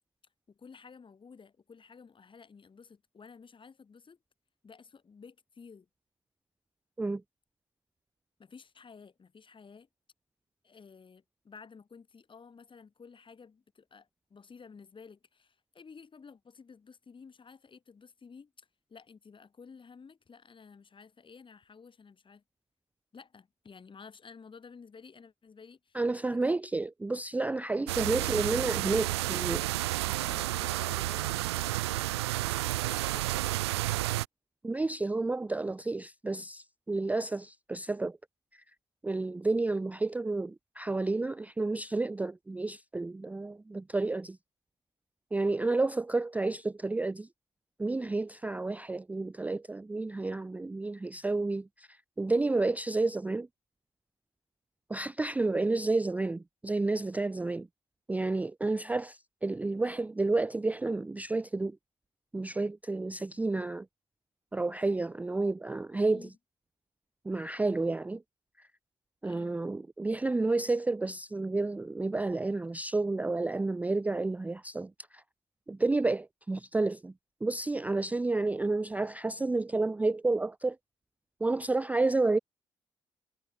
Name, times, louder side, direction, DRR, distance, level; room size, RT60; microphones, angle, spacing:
voice 1, 0.5-4.2 4.6-5.9 8.4-9.9 10.6-22.4 23.1-26.0 26.4-26.6 27.9-28.2 29.3-29.7 30.0-32.1 32.5-34.1 66.1-66.4 69.2-69.6, left 5 dB, 40° left, 3.2 m, -53 dB
voice 2, 25.9-29.6 34.6-38.2 38.5-38.6 39.0-44.4 45.3-47.3 47.8-53.5 54.9-57.7 58.1-61.8 62.3-63.9 64.5-66.3 67.2-68.2 68.6-68.7 69.2-75.2 75.7-77.1 77.4-80.8 81.4-82.4, right 3 dB, 10° right, 0.4 m, -30 dB
sound 1, 27.9-34.3, right 17 dB, 85° right, 0.4 m, -31 dB
hypercardioid pair, 45°, 14 cm